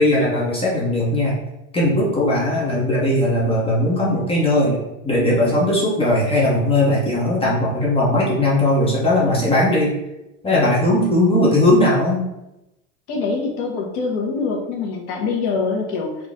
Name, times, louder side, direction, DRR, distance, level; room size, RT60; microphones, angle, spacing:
voice 1, 0.0-1.4 1.7-9.9 10.4-12.2, left 1 dB, 15° left, -5 dB, 1.0 m, -18 dB
voice 2, 13.1-16.2, left 4 dB, 60° left, -1 dB, 1.3 m, -24 dB
4.0 x 3.0 x 3.6 m, 0.92 s
supercardioid pair, 145°, 39 cm